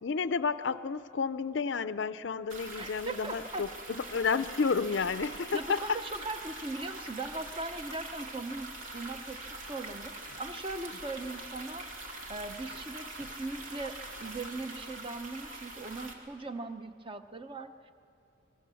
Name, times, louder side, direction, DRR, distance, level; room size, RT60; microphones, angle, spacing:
voice 1, 0.0-6.0, left 5 dB, 60° left, 13 dB, 0.5 m, -31 dB
sound 1, 2.5-16.1, right 2 dB, 80° right, 2.4 m, -43 dB
voice 2, 2.8-3.7 5.5-11.9 12.3-17.9, right 2 dB, 25° right, 9 dB, 0.7 m, -39 dB
24.5 x 20.5 x 7.0 m, 2.7 s
head